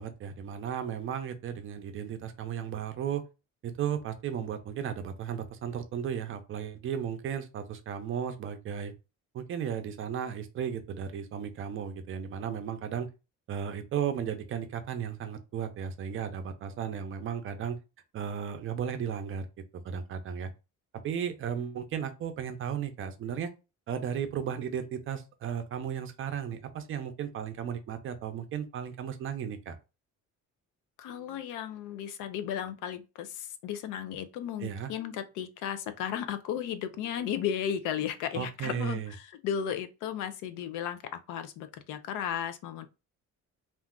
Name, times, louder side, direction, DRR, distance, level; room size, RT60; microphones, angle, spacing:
voice 1, 0.0-3.2 3.6-8.9 9.3-13.1 13.5-17.8 18.1-19.5 19.8-20.5 21.0-23.5 23.9-29.8 34.6-34.9 38.3-39.1, right 8 dB, 45° right, 0.5 m, -35 dB
voice 2, 31.0-41.0 41.3-42.9, left 9 dB, 85° left, 0.5 m, -35 dB
2.5 x 2.3 x 3.6 m
cardioid pair, 160°, 30 cm